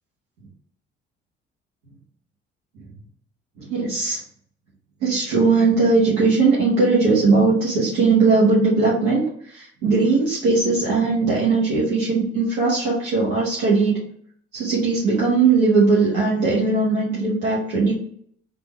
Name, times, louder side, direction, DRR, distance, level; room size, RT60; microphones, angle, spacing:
voice 1, 3.6-4.2 5.0-9.2 9.5-14.1 14.5-17.9, right 3 dB, 80° right, -6 dB, 1.0 m, -19 dB
3.5 x 2.5 x 3.1 m, 0.63 s
hypercardioid pair, 55°, 29 cm